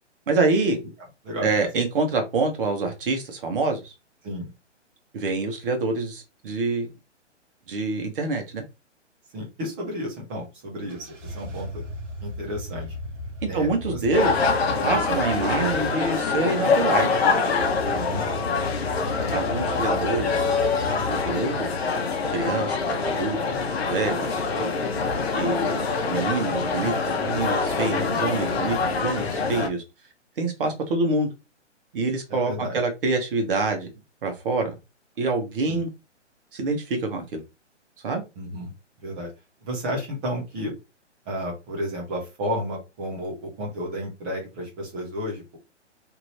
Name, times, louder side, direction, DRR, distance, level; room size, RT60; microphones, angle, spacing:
voice 1, 0.3-0.8 1.4-3.9 5.1-6.9 7.7-8.6 13.5-14.3 14.8-17.2 19.3-20.6 21.1-21.7 22.3-23.6 23.9-24.7 25.3-25.8 26.1-29.8 30.4-31.3 31.9-33.9 34.2-34.7 35.2-35.9 36.5-37.4 38.0-38.2, right 3 dB, 50° right, 1.1 m, -26 dB
voice 2, 9.3-11.8 12.2-12.9 13.5-14.0 14.8-15.0 17.9-18.3 27.9-28.1 32.3-32.8 35.7-35.8 38.4-38.7 39.0-39.3 39.6-40.7 41.3-45.6, equal, 10° right, 0.4 m, -32 dB
sound 1, 10.9-15.9 17.0-21.4, left 1 dB, 85° right, 1.0 m, -36 dB
sound 2, 14.1-29.7, left 4 dB, 60° left, 0.7 m, -25 dB
2.9 x 2.5 x 3.1 m
figure-of-eight pair, 130°, 36 cm